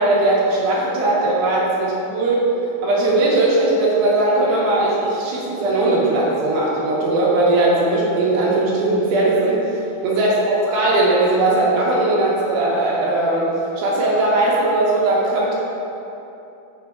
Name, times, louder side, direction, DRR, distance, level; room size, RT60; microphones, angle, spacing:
voice 1, 0.0-2.5 2.8-13.5 13.8-15.5, right 2 dB, 70° right, -5 dB, 2.5 m, -19 dB
7.7 x 6.4 x 3.5 m, 2.9 s
omnidirectional pair, 4.9 m